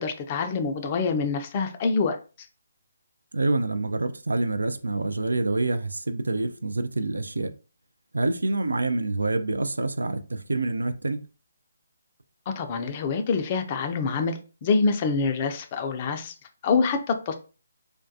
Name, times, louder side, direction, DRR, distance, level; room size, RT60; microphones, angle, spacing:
voice 1, 0.0-2.2 12.6-16.3 16.6-17.3, left 4 dB, 30° left, 0.4 m, -26 dB
voice 2, 3.3-7.5 8.1-11.2, right 2 dB, 75° right, 0.3 m, -27 dB
2.3 x 2.2 x 2.6 m
figure-of-eight pair, 140°, 0 cm